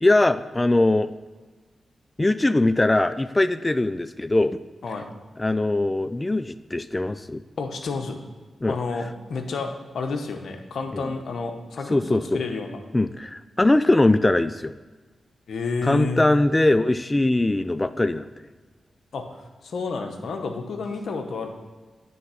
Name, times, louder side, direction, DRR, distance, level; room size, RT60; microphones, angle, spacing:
voice 1, 0.0-1.1 2.2-4.6 5.4-7.4 8.6-8.8 10.9-11.1 11.9-12.4 12.9-14.7 15.8-18.3, left 2 dB, 25° left, 12 dB, 0.3 m, -21 dB
voice 2, 7.6-8.2 8.7-12.8 15.5-16.2 19.1-21.5, left 4 dB, 75° left, 4 dB, 0.9 m, -30 dB
9.3 x 3.5 x 5.6 m, 1.3 s
cardioid pair, 45°, 0 cm